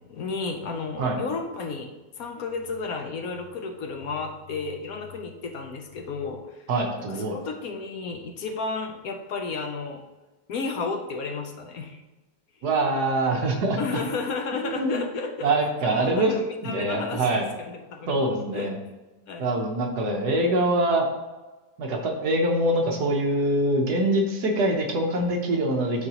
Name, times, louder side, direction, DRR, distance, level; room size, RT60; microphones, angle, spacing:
voice 1, 0.1-6.6 7.1-10.0 10.5-12.0 13.8-15.5 15.8-17.4 17.7-18.1 18.5-18.7 19.3-19.5, left 4 dB, 65° left, 4 dB, 1.0 m, -32 dB
voice 2, 6.7-7.4 12.6-14.0 14.6-15.0 15.4-16.3 16.6-17.5 18.1-18.8 19.4-21.0 21.8-26.1, right 1 dB, 65° right, 2 dB, 1.4 m, -24 dB
11.5 x 4.2 x 2.9 m, 1.2 s
omnidirectional pair, 1.9 m